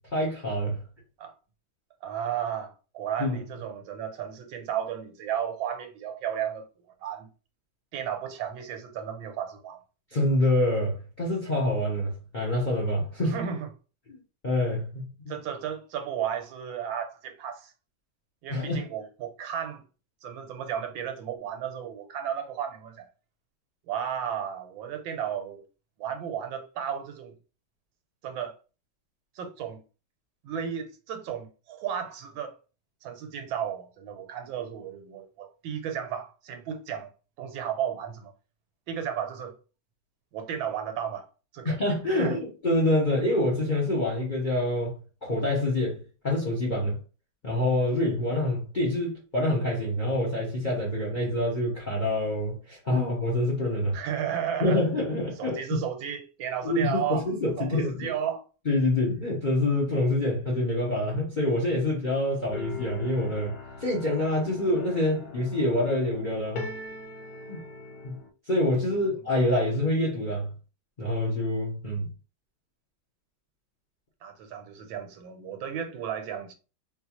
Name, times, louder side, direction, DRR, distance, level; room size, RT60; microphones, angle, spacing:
voice 1, 0.1-0.8 3.2-3.4 10.1-13.3 14.1-14.2 14.4-15.1 18.5-18.8 41.6-44.9 45.2-46.0 46.2-47.0 47.4-53.9 54.6-55.8 56.6-58.1 58.7-63.6 63.8-66.6 67.5-67.6 68.0-68.2 68.5-70.5 71.0-72.1, left 1 dB, 40° left, 0.7 m, -26 dB
voice 2, 2.0-6.7 7.0-7.3 7.9-9.8 13.3-13.7 15.3-17.7 18.4-19.8 20.2-23.0 23.9-25.6 26.0-27.4 28.2-28.5 29.3-29.8 30.4-32.5 33.0-37.1 37.4-38.3 38.9-39.5 40.3-41.2 41.5-41.8 42.2-42.4 53.9-54.8 55.4-58.4 74.2-76.5, right 8 dB, 80° right, 1.4 m, -33 dB
sound 1, 62.5-68.3, left 3 dB, 85° left, 1.5 m, -41 dB
3.9 x 2.4 x 2.9 m
omnidirectional pair, 2.1 m